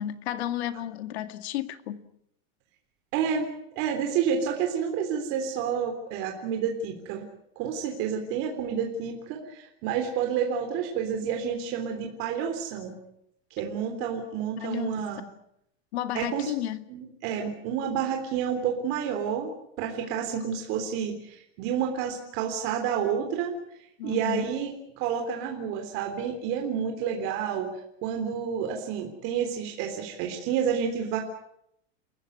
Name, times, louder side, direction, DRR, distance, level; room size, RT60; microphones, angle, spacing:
voice 1, 0.0-2.1 14.6-15.0 15.9-16.8 24.0-24.6, left 11 dB, 85° left, 2.0 m, -32 dB
voice 2, 3.1-3.5 3.7-7.2 7.5-13.0 13.6-15.2 16.1-16.5 16.9-19.5 19.8-23.6 24.0-31.2, right 7 dB, 45° right, 3.5 m, -29 dB
28.5 x 15.5 x 9.4 m
supercardioid pair, 165°, 31 cm